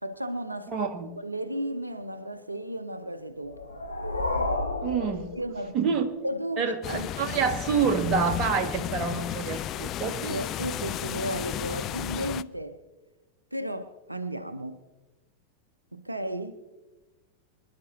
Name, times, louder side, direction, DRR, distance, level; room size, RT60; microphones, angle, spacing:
voice 1, 0.0-0.9 1.2-3.6 5.1-5.9 6.2-7.3 10.1-12.8 13.5-14.8 15.9-16.6, right 1 dB, 85° right, 0.6 m, -34 dB
voice 2, 0.7-1.1 4.8-5.2 5.7-6.1 6.6-10.4, right 6 dB, 30° right, 1.7 m, -27 dB
sound 1, 3.4-6.0, left 2 dB, 80° left, 1.2 m, -31 dB
sound 2, 6.8-12.4, left 12 dB, 35° left, 0.4 m, -34 dB
25.0 x 11.0 x 2.7 m
figure-of-eight pair, 90°, 0 cm